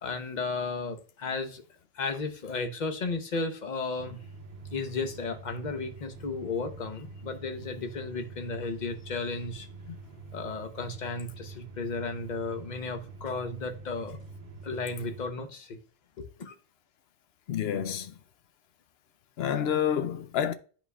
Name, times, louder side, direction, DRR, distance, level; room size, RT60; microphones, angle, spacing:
voice 1, 0.0-1.6 1.9-4.2 4.7-9.7 10.3-14.2 14.6-15.8 16.2-16.5, left 3 dB, 45° left, 0.9 m, -34 dB
sound 1, 4.0-15.3, right 3 dB, 65° right, 0.9 m, -46 dB
voice 2, 17.5-18.1 19.4-20.5, left 9 dB, 75° left, 0.8 m, -28 dB
10.5 x 4.0 x 2.3 m
omnidirectional pair, 1.1 m